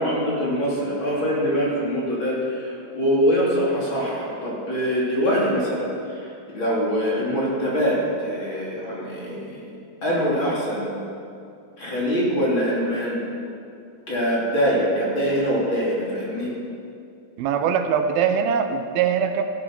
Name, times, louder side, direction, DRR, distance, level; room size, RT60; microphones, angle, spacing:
voice 1, 0.0-9.7 10.0-11.1 11.8-13.2 14.1-16.5, equal, 35° left, -5 dB, 3.5 m, -24 dB
voice 2, 17.4-19.4, right 7 dB, 80° right, 7 dB, 2.6 m, -22 dB
15.0 x 12.0 x 6.0 m, 2.5 s
omnidirectional pair, 4.3 m